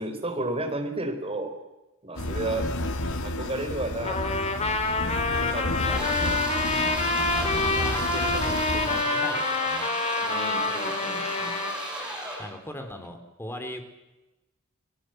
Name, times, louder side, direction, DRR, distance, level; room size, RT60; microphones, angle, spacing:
voice 1, 0.0-1.6 2.0-2.7 3.2-4.6 5.4-6.4 10.2-11.6, right 2 dB, 25° right, 5 dB, 4.4 m, -33 dB
sound 1, 2.2-9.0, left 1 dB, 80° left, 1.9 m, -31 dB
Trumpet, 4.0-11.8, left 3 dB, 30° left, 3.2 m, -27 dB
sound 2, 5.8-12.5, right 1 dB, 5° right, 7.5 m, -34 dB
voice 2, 7.2-9.9 12.4-13.8, left 1 dB, 10° left, 6 dB, 3.5 m, -39 dB
30.0 x 20.0 x 7.9 m, 1.0 s
head